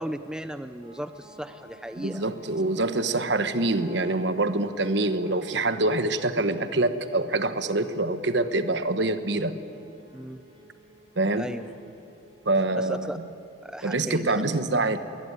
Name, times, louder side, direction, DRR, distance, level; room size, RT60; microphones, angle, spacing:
voice 1, 0.0-2.2 10.1-10.4 11.4-11.7 12.8-13.2 13.6-14.6, equal, 5° right, 10 dB, 0.5 m, -36 dB
sound 1, 0.8-13.6, right 1 dB, 25° right, 5.7 m, -53 dB
voice 2, 2.0-9.6 11.2-11.5 12.4-13.1 13.8-15.0, right 2 dB, 65° right, 10 dB, 1.1 m, -25 dB
21.5 x 19.5 x 9.5 m, 2.7 s
head